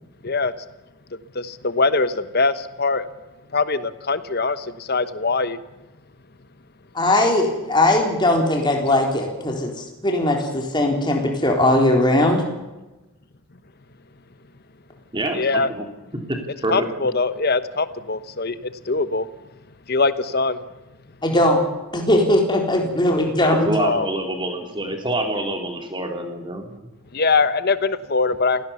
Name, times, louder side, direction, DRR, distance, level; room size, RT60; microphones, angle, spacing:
voice 1, 1.3-3.1 3.5-5.6 15.3-15.7 16.7-19.3 19.9-20.6 23.8-24.1 27.1-28.6, left 4 dB, 45° left, 13 dB, 1.0 m, -22 dB
voice 2, 6.9-9.7 10.0-12.4 21.2-21.6 21.9-23.7, left 1 dB, 20° left, 1 dB, 3.8 m, -19 dB
voice 3, 15.1-15.8 16.3-16.9 23.7-26.9, right 1 dB, 20° right, 3 dB, 3.3 m, -26 dB
27.0 x 17.5 x 7.1 m, 1.1 s
head